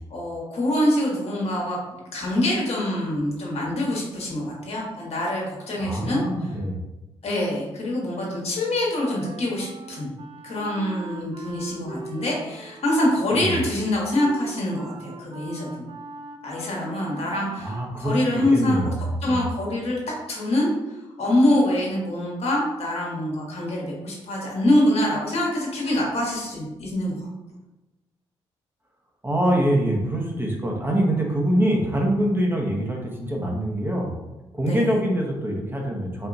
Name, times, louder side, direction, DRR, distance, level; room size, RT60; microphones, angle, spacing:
voice 1, 0.1-1.8 2.1-6.2 7.2-10.1 10.4-15.9 16.4-18.9 19.2-20.0 20.3-27.2 34.6-34.9, left 1 dB, 55° left, -3 dB, 1.4 m, -25 dB
voice 2, 5.8-6.8 13.3-13.6 17.6-19.5 29.2-34.1 34.5-36.3, right 1 dB, 15° right, -1 dB, 1.1 m, -24 dB
Wind instrument woodwind instrument, 8.9-18.0, right 3 dB, 40° right, 0.6 m, -41 dB
4.3 x 2.8 x 2.6 m, 1.0 s
hypercardioid pair, 45°, 13 cm